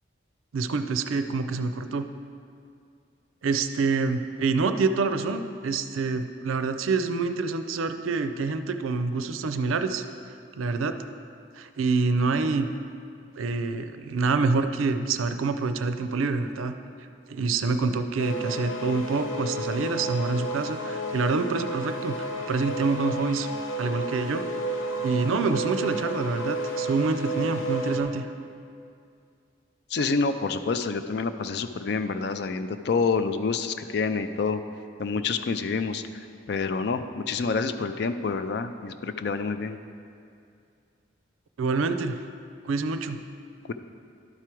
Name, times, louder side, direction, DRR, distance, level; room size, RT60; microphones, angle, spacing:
voice 1, 0.5-2.1 3.4-10.0 10.6-10.9 11.6-12.7 13.4-16.7 17.3-23.5 23.8-24.4 25.0-28.3 41.6-42.2 42.6-43.2, right 4 dB, 90° right, 9 dB, 0.4 m, -26 dB
sound 1, 18.2-28.0, right 1 dB, 85° left, 0.9 m, -32 dB
voice 2, 29.9-34.6 35.0-39.8 43.7-43.8, left 4 dB, 55° left, 10 dB, 0.4 m, -28 dB
11.5 x 4.8 x 4.5 m, 2.4 s
head